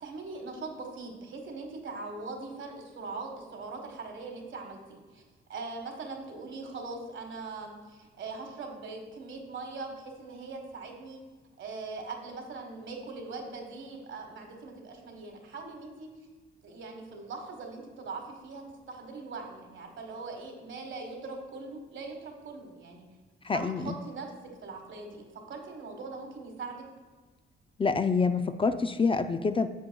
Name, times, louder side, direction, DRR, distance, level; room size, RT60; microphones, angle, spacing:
voice 1, 0.0-5.2 5.5-11.2 11.6-16.1 16.6-23.0 23.5-24.3 24.6-26.8, right 3 dB, 70° right, 3 dB, 1.4 m, -41 dB
voice 2, 23.4-23.9 27.8-29.7, left 4 dB, 25° left, 9 dB, 0.4 m, -26 dB
10.0 x 7.0 x 2.3 m, 1.3 s
cardioid pair, 80°, 21 cm